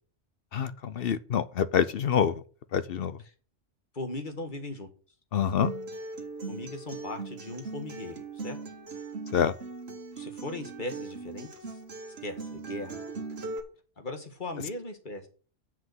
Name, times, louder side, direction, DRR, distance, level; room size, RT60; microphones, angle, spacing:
voice 1, 0.5-2.3 2.7-3.1 5.3-5.7 9.3-9.5, left 8 dB, 60° left, 0.7 m, -26 dB
voice 2, 3.9-4.9 6.5-8.6 10.2-11.8 12.2-13.0 14.0-15.3, left 2 dB, 40° left, 1.8 m, -38 dB
Acoustic guitar, 5.6-13.6, right 3 dB, 55° right, 1.6 m, -39 dB
7.6 x 5.9 x 7.8 m
omnidirectional pair, 1.3 m